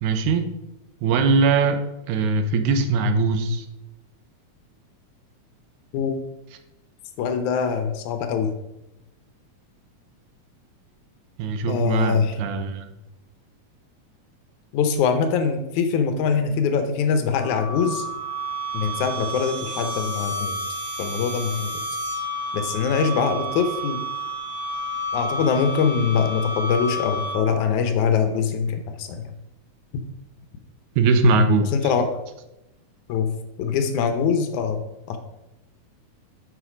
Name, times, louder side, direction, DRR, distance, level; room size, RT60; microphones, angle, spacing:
voice 1, 0.0-0.5 1.0-3.7 11.4-12.9 31.0-31.7, right 3 dB, 80° right, 8 dB, 2.2 m, -21 dB
voice 2, 7.2-8.5 11.7-12.4 14.7-18.1 18.7-20.6 21.0-21.8 22.5-24.0 25.1-29.3 31.7-32.1 33.1-33.3 33.6-35.2, left 6 dB, 80° left, 7 dB, 2.1 m, -23 dB
sound 1, 17.3-27.7, right 1 dB, 65° right, 2.3 m, -30 dB
8.2 x 5.8 x 4.9 m, 0.92 s
omnidirectional pair, 3.4 m